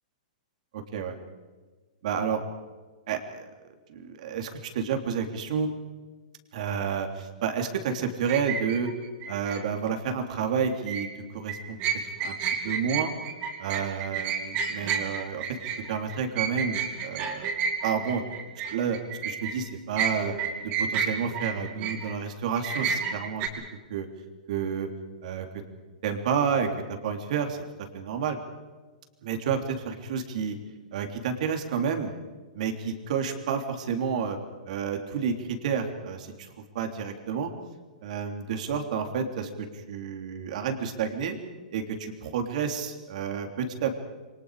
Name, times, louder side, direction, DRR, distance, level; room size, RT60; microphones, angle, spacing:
voice 1, 0.7-1.2 2.0-2.4 3.1-3.5 3.9-5.7 6.5-8.9 9.3-11.8 12.2-12.4 12.6-13.1 13.6-15.6 15.9-17.5 17.8-18.2 18.7-19.0 19.2-20.3 20.6-23.4 23.9-24.1 24.5-24.9 25.2-25.5 26.0-27.6 27.9-28.4 29.2-30.6 30.9-32.1 32.5-34.4 34.7-36.5 36.7-37.5 38.0-41.4 41.7-43.9, right 6 dB, 60° right, 4 dB, 3.5 m, -30 dB
sound 1, 8.3-9.6 10.7-11.1 11.5-19.6 20.0-22.1 22.5-23.5, right 6 dB, 30° right, 3.9 m, -30 dB
28.5 x 23.5 x 5.1 m, 1.3 s
hypercardioid pair, 150°, 4 cm